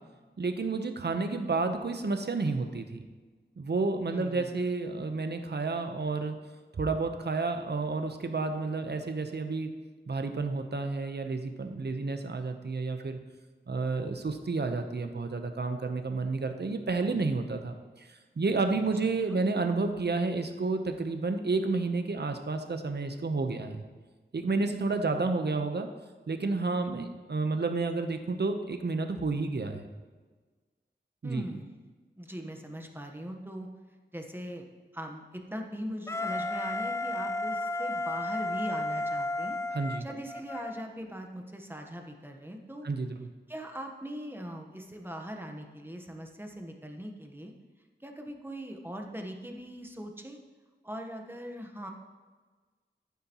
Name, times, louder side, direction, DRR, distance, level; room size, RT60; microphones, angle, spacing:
voice 1, 0.4-3.0 3.6-6.3 6.8-9.7 10.1-13.2 13.7-23.8 24.3-25.9 26.3-29.9 31.2-31.5 39.7-40.1 42.8-43.3, right 3 dB, 60° right, 6 dB, 0.9 m, -30 dB
voice 2, 4.1-4.6 19.3-19.4 24.8-25.4 31.2-31.7 32.2-33.7 34.1-34.7 34.9-39.6 40.0-42.9 43.5-47.5 48.0-50.4 50.8-51.9, equal, 10° right, 3 dB, 1.2 m, -41 dB
Wind instrument woodwind instrument, 36.1-40.8, left 2 dB, 15° left, 0.4 m, -33 dB
11.5 x 9.5 x 3.0 m, 1.4 s
wide cardioid pair, 65°, 19 cm